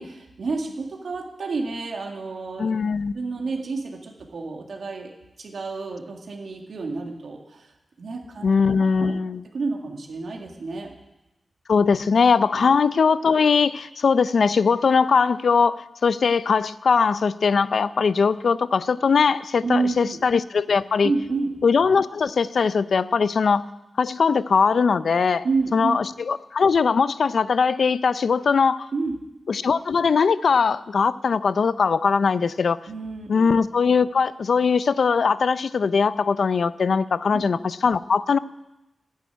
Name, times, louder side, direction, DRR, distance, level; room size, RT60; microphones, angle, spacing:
voice 1, 0.0-2.7 3.1-5.1 5.4-7.7 8.0-8.5 9.0-9.1 9.5-10.9 12.5-12.8 19.6-20.2 21.0-21.6 25.4-26.0 28.9-29.2 32.9-33.5 37.3-37.4, right 4 dB, 70° right, 2 dB, 2.2 m, -29 dB
voice 2, 2.6-3.1 8.4-9.4 11.7-21.1 21.6-23.7 24.0-25.4 25.7-28.9 29.5-32.8 33.3-38.4, left 5 dB, 70° left, 16 dB, 0.5 m, -20 dB
10.5 x 10.5 x 9.3 m, 0.95 s
wide cardioid pair, 105°, 0 cm